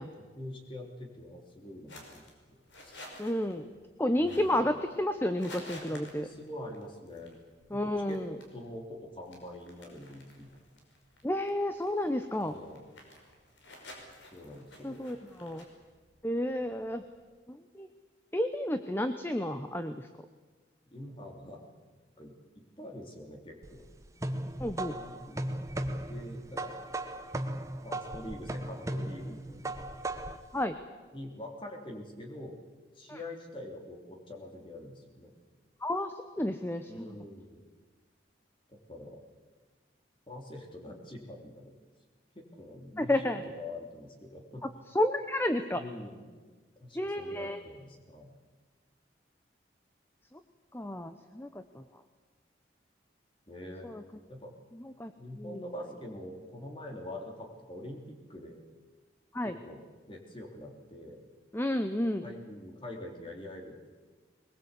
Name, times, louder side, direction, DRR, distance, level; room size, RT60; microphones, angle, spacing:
voice 1, 0.0-2.3 2.8-3.0 4.2-4.7 5.9-7.4 7.7-8.2 8.5-10.5 12.4-12.8 14.3-15.1 20.9-21.7 22.2-23.9 24.7-25.5 26.1-26.7 27.8-29.8 31.1-32.5 32.9-35.3 36.9-37.6 38.7-39.2 40.3-41.7 42.3-44.6 45.7-46.3 46.8-48.3 53.5-53.9 54.3-54.5 55.2-58.6 59.4-59.8 60.1-61.2 62.2-63.9, left 1 dB, 25° left, 2 dB, 3.3 m, -45 dB
sound 1, 1.9-17.2, left 1 dB, 85° left, 5.2 m, -53 dB
voice 2, 3.2-3.7 4.0-6.3 7.7-8.3 11.2-12.5 14.8-15.6 16.2-17.0 17.5-17.9 18.3-20.1 24.6-25.0 30.5-30.8 33.1-33.2 35.8-37.1 43.0-43.4 44.6-44.7 44.9-45.8 46.9-47.6 50.7-51.8 53.8-54.0 55.0-55.1 55.4-55.6 59.3-59.6 61.5-62.3, left 1 dB, 10° left, 9 dB, 0.8 m, -31 dB
sound 2, 23.6-30.5, right 1 dB, 15° right, 1.0 m, -37 dB
22.0 x 20.5 x 8.2 m, 1.4 s
head